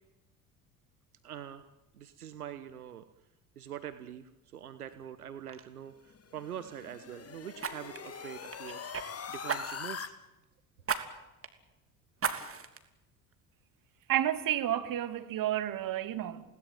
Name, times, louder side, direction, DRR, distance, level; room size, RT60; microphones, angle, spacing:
voice 1, 1.2-1.7 1.9-3.0 3.6-10.1, right 10 dB, 85° right, 1.2 m, -44 dB
Fire, 4.9-5.1 5.5-5.7 7.6-9.1 9.5-10.0 10.8-11.0 11.4-11.5 12.2-12.8 13.3-13.4, right 6 dB, 30° right, 3.1 m, -35 dB
sound 1, 6.1-10.1, left 7 dB, 35° left, 2.5 m, -43 dB
voice 2, 14.1-16.4, right 12 dB, 50° right, 2.5 m, -31 dB
29.5 x 19.0 x 9.3 m
figure-of-eight pair, 60°, 43 cm